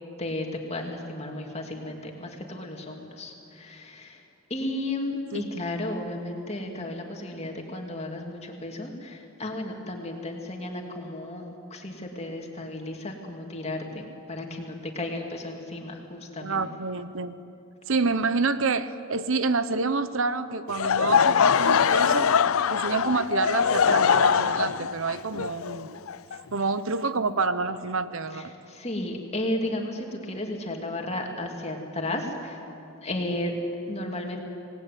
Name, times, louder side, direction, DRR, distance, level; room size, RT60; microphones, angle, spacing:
voice 1, 0.2-4.2 4.5-16.6 26.3-26.4 28.3-32.6 33.0-33.6 33.9-34.4, left 1 dB, 30° left, 2 dB, 2.8 m, -34 dB
voice 2, 16.4-17.3 17.9-22.3 22.7-26.0 26.5-28.5, right 4 dB, 65° right, 13 dB, 0.8 m, -28 dB
Laughter / Crowd, 20.7-26.6, left 7 dB, 70° left, 0.5 m, -22 dB
26.5 x 19.0 x 9.5 m, 2.7 s
head